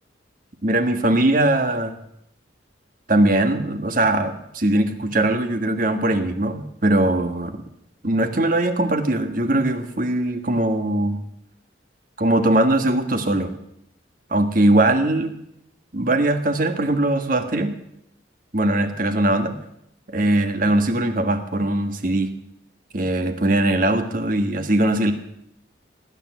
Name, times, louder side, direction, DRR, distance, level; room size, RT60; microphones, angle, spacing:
voice 1, 0.6-1.9 3.1-7.6 8.0-11.2 12.2-13.5 14.3-15.4 15.9-17.7 18.5-19.5 20.1-22.3 22.9-25.1, right 1 dB, 45° right, 8 dB, 1.6 m, -20 dB
18.5 x 9.6 x 7.7 m, 0.77 s
head